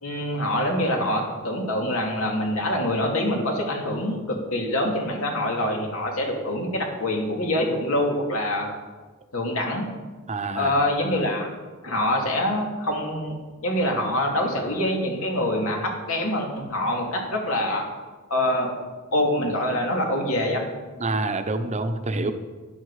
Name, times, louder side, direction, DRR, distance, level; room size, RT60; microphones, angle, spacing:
voice 1, 0.0-8.7 9.3-9.8 10.5-11.5 11.8-13.4 13.6-17.9 18.3-18.7 19.1-20.6, left 1 dB, 70° left, 0 dB, 2.8 m, -25 dB
voice 2, 10.3-10.7 21.0-22.3, right 2 dB, 30° right, 8 dB, 0.9 m, -27 dB
12.5 x 10.5 x 4.9 m, 1.3 s
head